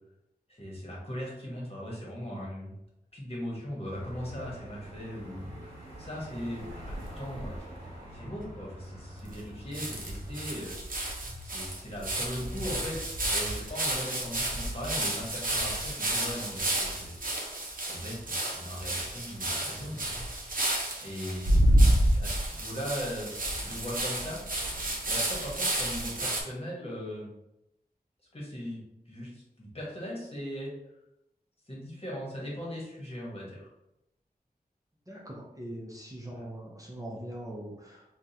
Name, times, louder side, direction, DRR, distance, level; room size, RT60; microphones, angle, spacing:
voice 1, 0.5-2.7 3.1-7.7 8.1-11.1 11.4-17.1 17.9-20.1 21.0-21.7 22.2-24.4 25.0-27.3 28.3-28.8 29.1-30.7 31.7-33.7 36.3-36.5, equal, 35° left, -5 dB, 1.2 m, -39 dB
sound 1, 3.9-10.5, equal, 40° right, 1.4 m, -45 dB
sound 2, 6.6-7.6 8.1-8.2 8.4-8.5 9.3-9.4 9.7-26.4, right 1 dB, 60° right, 0.7 m, -30 dB
voice 2, 35.1-38.0, right 1 dB, 20° right, -4 dB, 0.7 m, -41 dB
3.6 x 2.3 x 2.7 m, 0.86 s
wide cardioid pair, 65°, 16 cm